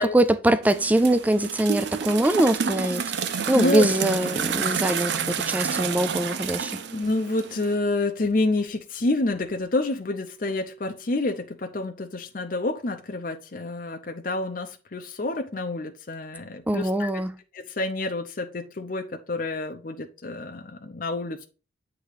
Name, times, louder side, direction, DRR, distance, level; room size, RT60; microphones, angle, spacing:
voice 1, 0.0-3.0 3.5-6.8 16.7-17.3, right 1 dB, 10° right, 0.3 m, -22 dB
sound 1, 0.6-7.7, right 7 dB, 70° right, 0.5 m, -29 dB
Vehicle, 1.1-7.5, right 2 dB, 45° right, 3.2 m, -47 dB
voice 2, 6.9-17.2 17.5-21.5, left 2 dB, 50° left, 0.6 m, -28 dB
8.1 x 3.0 x 4.9 m
head